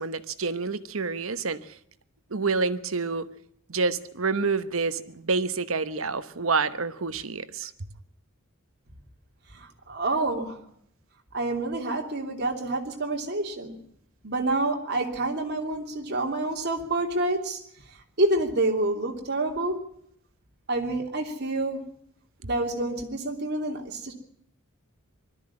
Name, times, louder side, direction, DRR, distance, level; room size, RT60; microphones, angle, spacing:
voice 1, 0.0-1.6 2.3-3.3 3.7-7.7, right 4 dB, 65° right, 12 dB, 1.1 m, -28 dB
voice 2, 9.5-10.6 11.3-13.8 14.2-17.6 18.2-19.8 20.7-21.8 22.4-24.1, right 2 dB, 50° right, 2 dB, 3.0 m, -28 dB
21.0 x 13.0 x 9.7 m, 0.71 s
head